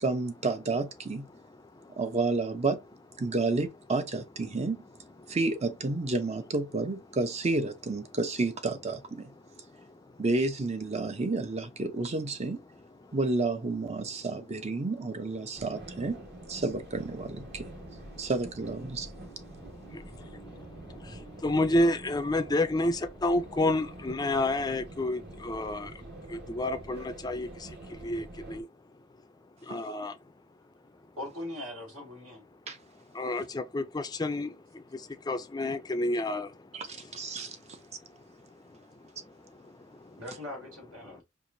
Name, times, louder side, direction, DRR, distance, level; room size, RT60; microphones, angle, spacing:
voice 1, 0.0-1.3 2.0-2.8 3.2-4.8 5.3-9.3 10.2-12.6 13.1-16.2 16.5-17.7 18.2-19.1 29.7-29.8 32.7-32.8 36.7-37.6, right 3 dB, 35° right, 0.5 m, -30 dB
sound 1, 15.6-28.6, right 1 dB, 55° right, 1.4 m, -46 dB
voice 2, 21.4-25.9 26.3-27.5 28.0-28.7 29.7-30.1 33.2-34.5 35.3-36.5, left 1 dB, 20° left, 0.4 m, -29 dB
voice 3, 31.2-32.4 40.2-41.2, left 1 dB, 80° right, 2.2 m, -40 dB
4.6 x 2.5 x 2.6 m
head